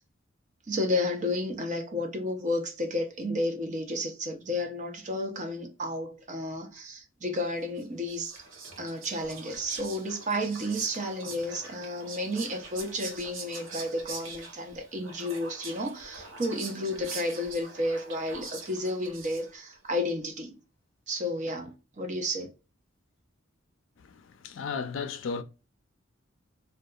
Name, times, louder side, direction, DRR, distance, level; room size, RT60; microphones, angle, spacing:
voice 1, 0.7-8.4 8.8-20.6 21.1-22.5, left 1 dB, 40° right, 0.7 m, -32 dB
Whispering, 7.8-19.7, right 4 dB, 75° right, 0.8 m, -43 dB
voice 2, 24.0-25.4, left 5 dB, 70° left, 0.4 m, -35 dB
2.7 x 2.3 x 2.2 m
head